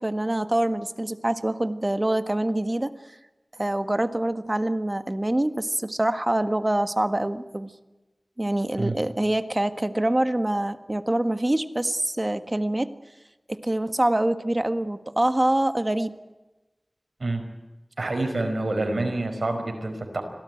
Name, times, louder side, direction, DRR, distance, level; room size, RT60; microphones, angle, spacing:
voice 1, 0.0-2.9 3.6-7.7 8.4-12.9 13.5-16.1, right 1 dB, 30° right, 9 dB, 1.6 m, -25 dB
voice 2, 18.0-20.2, right 2 dB, 80° right, 5 dB, 5.2 m, -27 dB
26.0 x 17.5 x 9.2 m, 1.1 s
wide cardioid pair, 45°, 0 cm